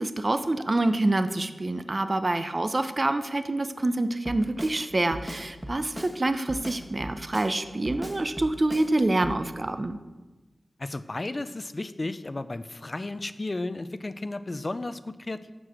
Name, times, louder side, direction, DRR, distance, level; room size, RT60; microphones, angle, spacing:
voice 1, 0.0-10.0, right 2 dB, 40° right, 10 dB, 0.8 m, -26 dB
Drum kit, 4.2-4.8 5.1-6.2 6.5-7.5 7.8-8.9 9.2-9.4, equal, 5° right, 1.2 m, -37 dB
voice 2, 10.8-15.5, left 2 dB, 40° left, 13 dB, 0.5 m, -34 dB
12.5 x 4.8 x 7.5 m, 1.2 s
wide cardioid pair, 70°, 0 cm